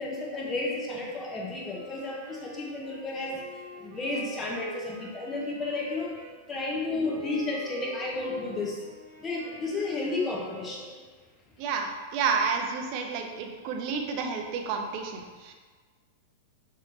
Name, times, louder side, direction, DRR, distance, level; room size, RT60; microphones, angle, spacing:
voice 1, 0.0-3.4 3.8-6.1 6.5-8.8 9.2-10.9, left 3 dB, 20° left, -2 dB, 0.9 m, -32 dB
Wind instrument woodwind instrument, 1.7-6.4 7.0-10.9, right 1 dB, 65° right, 1.0 m, -46 dB
voice 2, 11.6-15.5, right 5 dB, 45° right, 4 dB, 0.5 m, -30 dB
5.7 x 3.0 x 2.6 m, 1.5 s
figure-of-eight pair, 95°, 0 cm